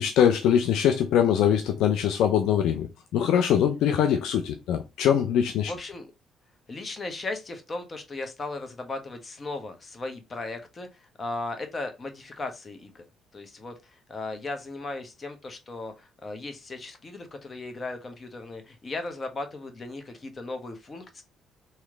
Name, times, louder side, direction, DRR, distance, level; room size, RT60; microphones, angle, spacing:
voice 1, 0.0-5.7, left 9 dB, 75° left, 0.5 m, -23 dB
voice 2, 5.7-6.1 6.7-13.0 13.3-21.2, left 2 dB, 35° left, 1.2 m, -37 dB
3.1 x 3.0 x 3.8 m
supercardioid pair, 65°, 0 cm